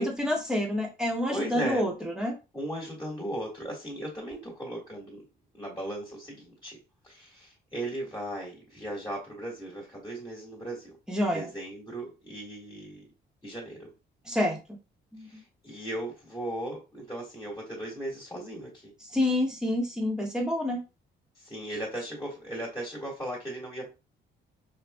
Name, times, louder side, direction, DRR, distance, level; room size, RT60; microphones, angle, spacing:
voice 1, 0.0-2.3 11.1-11.5 14.2-14.6 15.1-15.4 19.1-20.8, left 1 dB, 5° right, 0 dB, 1.3 m, -28 dB
voice 2, 1.3-1.9 2.5-5.2 5.5-6.8 7.0-11.0 11.3-13.0 13.4-13.9 15.3-18.9 21.4-23.9, right 1 dB, 15° left, -3 dB, 1.7 m, -37 dB
4.8 x 2.5 x 2.2 m, 0.28 s
cardioid pair, 90°, 20 cm